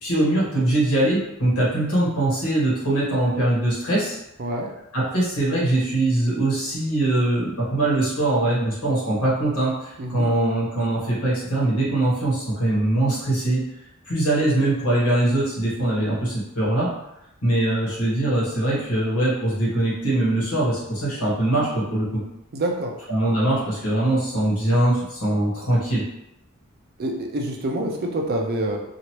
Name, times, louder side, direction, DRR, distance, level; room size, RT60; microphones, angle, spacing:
voice 1, 0.0-4.2 4.9-13.6 14.1-16.9 17.4-22.2 23.1-26.0, right 1 dB, 80° left, -6 dB, 1.3 m, -22 dB
voice 2, 4.4-4.7 10.0-10.3 22.5-22.9 27.0-28.8, right 1 dB, 45° right, 1 dB, 0.5 m, -26 dB
2.9 x 2.4 x 3.0 m, 0.85 s
head